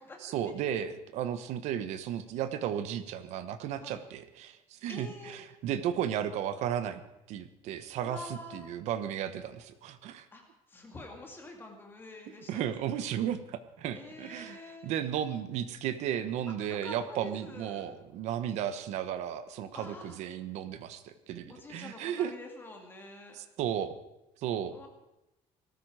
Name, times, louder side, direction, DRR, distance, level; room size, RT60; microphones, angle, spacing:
voice 1, 0.2-7.0 7.3-10.3 12.5-22.3 23.3-24.0 24.4-24.8, right 10 dB, 60° right, 10 dB, 1.1 m, -34 dB
voice 2, 4.9-5.4 8.0-8.7 10.3-10.4 10.7-13.1 13.9-14.9 16.7-17.9 19.7-20.2 21.5-23.4 24.7-24.9, left 2 dB, 15° left, 2 dB, 2.2 m, -47 dB
19.5 x 13.5 x 4.9 m, 0.93 s
cardioid pair, 175°, 13 cm